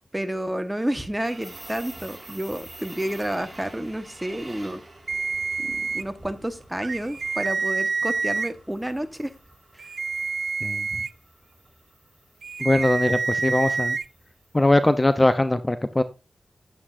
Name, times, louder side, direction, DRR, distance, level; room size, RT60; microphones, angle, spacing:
voice 1, 0.0-4.8 5.6-9.3 9.7-9.9, right 1 dB, 10° right, 1.5 m, -30 dB
sound 1, 1.1-15.2, right 2 dB, 30° right, 4.7 m, -48 dB
sound 2, 5.1-6.0 6.8-8.5 9.8-11.1 12.4-14.0, right 4 dB, 70° right, 0.4 m, -27 dB
voice 2, 12.6-14.0 14.5-16.0, left 1 dB, 25° left, 0.8 m, -21 dB
9.8 x 8.6 x 2.7 m
cardioid pair, 45°, 0 cm